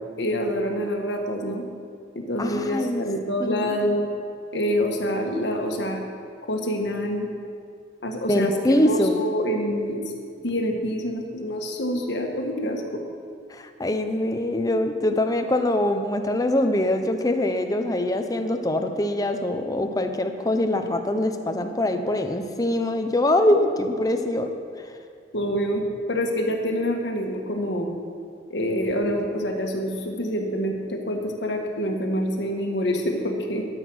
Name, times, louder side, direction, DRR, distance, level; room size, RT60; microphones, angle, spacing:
voice 1, 0.2-1.7 2.2-4.1 4.5-6.0 6.5-7.3 8.0-8.5 8.9-10.0 10.4-13.0 23.5-23.6 25.3-25.8 26.1-27.9 28.5-33.7, equal, 75° left, 2 dB, 1.6 m, -26 dB
voice 2, 2.4-3.1 3.4-3.8 8.3-9.2 13.5-24.5, left 1 dB, 20° left, 6 dB, 0.8 m, -23 dB
13.5 x 8.3 x 6.3 m, 2.3 s
head